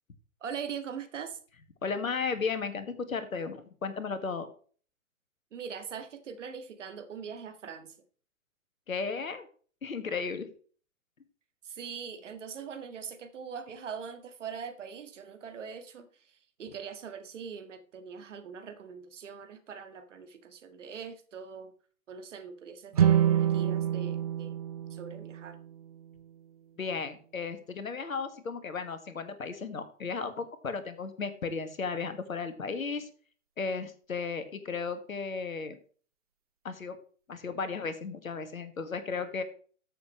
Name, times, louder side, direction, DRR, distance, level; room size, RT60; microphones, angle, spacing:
voice 1, 0.4-1.4 5.5-8.0 11.6-21.7 22.1-24.6 24.9-25.6, right 6 dB, 60° right, 8 dB, 1.8 m, -42 dB
voice 2, 1.8-4.5 8.9-9.5 9.8-10.5 26.8-33.1 33.6-35.8 36.6-37.0 37.3-39.4, left 5 dB, 75° left, 10 dB, 1.8 m, -35 dB
sound 1, 22.9-26.2, right 10 dB, 30° right, 0.4 m, -27 dB
14.0 x 6.7 x 3.2 m, 0.43 s
figure-of-eight pair, 120°, 41 cm